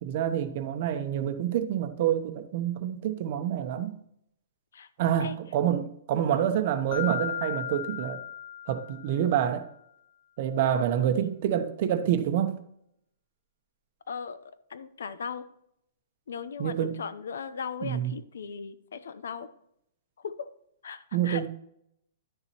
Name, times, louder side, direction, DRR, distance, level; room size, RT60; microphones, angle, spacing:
voice 1, 0.0-4.0 5.0-8.2 8.7-9.7 10.4-12.6 16.6-17.0 17.8-18.1 21.1-21.5, right 10 dB, 45° right, 9 dB, 0.8 m, -27 dB
Mallet percussion, 6.9-9.5, left 10 dB, 35° left, 1.5 m, -36 dB
voice 2, 10.7-11.3 14.1-14.4 14.7-15.4 16.3-19.5 20.2-20.5 20.8-21.5, left 6 dB, 90° left, 13 dB, 0.7 m, -38 dB
11.0 x 6.9 x 3.0 m, 0.74 s
hypercardioid pair, 160°, 0 cm